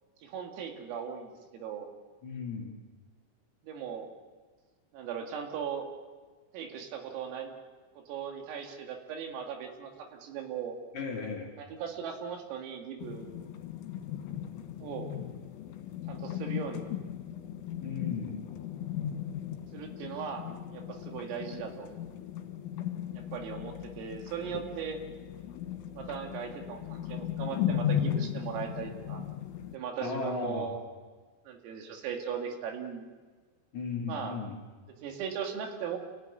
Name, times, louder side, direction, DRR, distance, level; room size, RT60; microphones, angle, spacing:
voice 1, 0.2-1.9 3.6-4.1 4.9-5.9 6.5-7.6 8.0-10.8 11.6-13.3 14.8-15.1 16.1-16.9 19.7-20.4 20.7-21.9 23.1-25.0 26.0-29.2 29.7-30.8 31.5-33.1 34.1-34.4 35.0-36.0, right 7 dB, 80° right, 3 dB, 4.9 m, -38 dB
voice 2, 2.2-2.8 10.9-11.5 17.8-18.4 30.0-30.7 33.7-34.6, left 4 dB, 45° left, -2 dB, 3.1 m, -36 dB
sound 1, 13.0-29.8, left 10 dB, 75° left, 4.4 m, -36 dB
28.5 x 16.0 x 9.7 m, 1.4 s
omnidirectional pair, 5.9 m